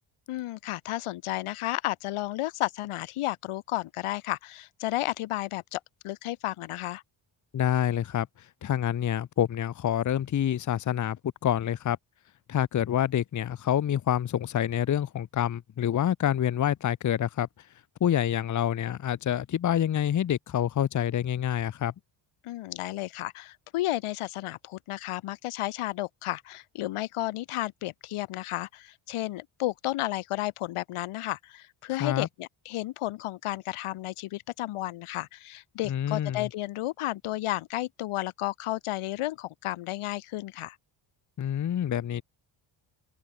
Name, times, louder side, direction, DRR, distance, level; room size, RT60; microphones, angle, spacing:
voice 1, 0.3-7.0 22.4-40.8, left 16 dB, 85° left, 1.3 m, -32 dB
voice 2, 7.5-8.3 8.6-11.2 11.4-12.0 12.5-17.5 18.0-21.9 32.0-32.3 35.9-36.5 41.4-42.2, left 10 dB, 35° left, 0.8 m, -27 dB
cardioid pair, 135°, 49 cm